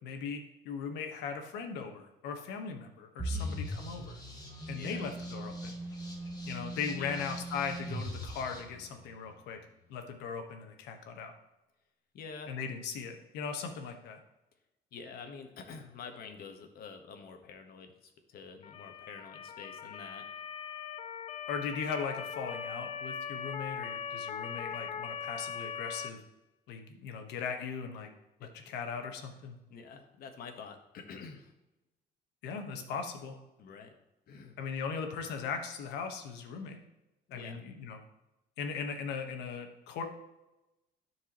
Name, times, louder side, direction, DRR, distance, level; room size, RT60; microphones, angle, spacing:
voice 1, 0.0-4.2 4.7-5.8 6.5-9.6 9.9-11.3 12.5-14.2 21.5-26.2 26.7-28.1 28.4-29.5 32.4-33.4 34.6-36.8 37.3-38.0 38.6-40.0, left 6 dB, 90° left, 5 dB, 1.3 m, -38 dB
sound 1, 3.2-9.2, right 1 dB, 15° right, 2.7 m, -40 dB
voice 2, 3.3-3.7 4.7-5.1 7.0-7.2 12.1-12.6 14.9-20.2 28.4-28.7 29.7-31.5 33.6-33.9 34.3-34.6 37.3-37.6, left 5 dB, 65° left, 5 dB, 1.3 m, -47 dB
sound 2, 3.3-8.6, left 1 dB, 25° left, 1.8 m, -52 dB
Motor vehicle (road) / Siren, 18.6-26.1, left 7 dB, 40° left, 0.6 m, -40 dB
13.0 x 4.6 x 3.0 m, 0.97 s
cardioid pair, 110°, 17 cm